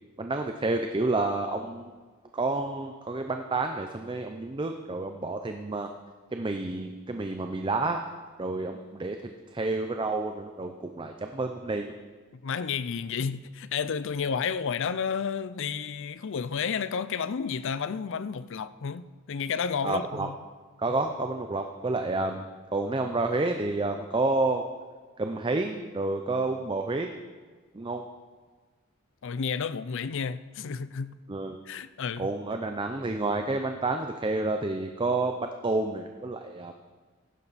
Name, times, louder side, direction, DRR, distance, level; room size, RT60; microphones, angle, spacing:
voice 1, 0.2-1.9 2.3-5.9 6.3-8.0 8.4-11.9 19.8-20.3 20.8-24.7 25.2-27.1 27.7-28.0 31.3-31.6 32.2-36.7, right 2 dB, 20° right, 0.5 m, -29 dB
voice 2, 12.4-20.3 29.2-31.1 31.7-32.3, left 6 dB, 60° left, 0.5 m, -31 dB
15.5 x 11.0 x 4.1 m
head